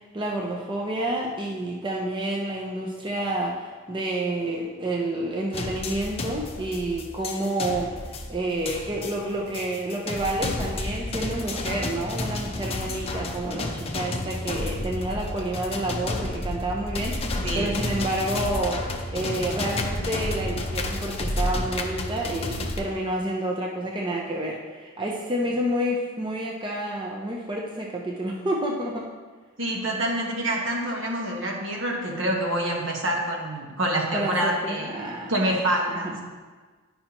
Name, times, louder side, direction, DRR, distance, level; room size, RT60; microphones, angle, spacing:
voice 1, 0.1-7.9 8.3-29.1 34.1-35.6 35.9-36.2, right 1 dB, 25° right, -2 dB, 0.6 m, -29 dB
sound 1, 5.5-22.8, left 2 dB, 30° left, 0.6 m, -31 dB
voice 2, 17.4-17.8 29.6-34.9 35.3-36.2, right 1 dB, 65° right, 0 dB, 1.2 m, -26 dB
10.5 x 5.5 x 2.9 m, 1.4 s
head